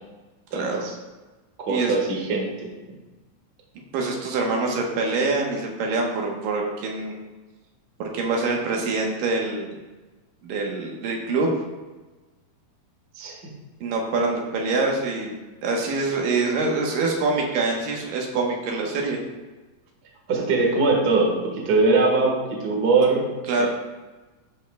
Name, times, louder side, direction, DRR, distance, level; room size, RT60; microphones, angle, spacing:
voice 1, 0.5-0.9 1.7-2.5 13.1-13.4 20.3-23.2 23.6-23.7, right 3 dB, 50° right, -1 dB, 1.2 m, -21 dB
voice 2, 3.9-7.2 8.0-9.7 10.4-11.6 13.8-15.4 15.6-19.2 23.5-23.7, right 3 dB, 75° right, 0 dB, 2.7 m, -25 dB
13.0 x 5.5 x 2.3 m, 1.2 s
omnidirectional pair, 4.1 m